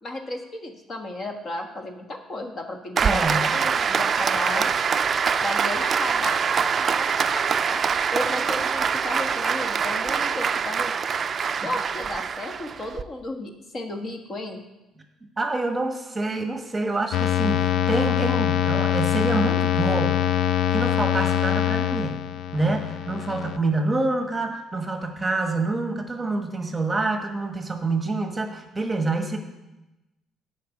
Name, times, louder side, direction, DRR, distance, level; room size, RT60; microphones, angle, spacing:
voice 1, 0.0-4.7 5.4-7.8 8.1-10.9 11.6-14.6, left 1 dB, 35° left, 3 dB, 1.4 m, -34 dB
voice 2, 3.0-3.5 11.5-11.7 15.4-20.2 20.5-22.2 22.5-29.4, right 2 dB, 20° right, 4 dB, 1.2 m, -27 dB
Applause, 3.0-13.0, right 6 dB, 40° right, 0.4 m, -24 dB
sound 1, 17.1-23.6, left 11 dB, 60° left, 0.3 m, -23 dB
9.1 x 5.6 x 8.2 m, 0.99 s
cardioid pair, 100°, 0 cm